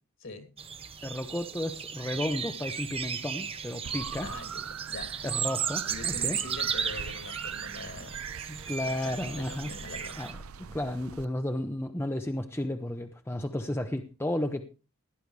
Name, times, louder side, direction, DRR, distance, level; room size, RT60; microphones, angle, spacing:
sound 1, 0.6-10.3, right 7 dB, 25° right, 0.7 m, -35 dB
voice 1, 1.0-4.3 5.2-6.4 8.5-9.7 10.2-10.3 10.6-14.7, left 1 dB, 10° left, 6 dB, 0.8 m, -33 dB
sound 2, 3.8-11.3, right 7 dB, 75° right, 0.5 m, -42 dB
voice 2, 4.2-5.1 5.8-8.2 8.8-10.2, left 2 dB, 60° left, 6 dB, 2.8 m, -43 dB
17.0 x 11.0 x 3.3 m, 0.31 s
head